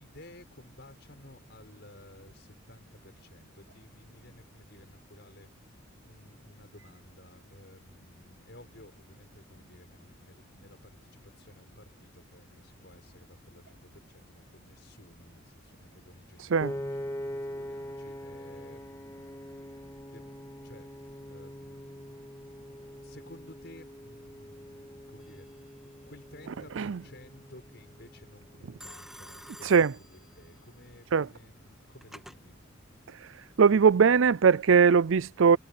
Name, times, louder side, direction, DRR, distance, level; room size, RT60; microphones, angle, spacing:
voice 1, 0.0-22.4 23.0-32.6, left 1 dB, 55° left, 6.4 m, -55 dB
Piano, 16.6-28.9, equal, 15° left, 2.0 m, -43 dB
Telephone, 25.2-25.7 28.8-30.7 31.6-32.4, equal, ahead, 2.4 m, -50 dB
voice 2, 33.6-35.6, right 6 dB, 70° right, 0.5 m, -20 dB
head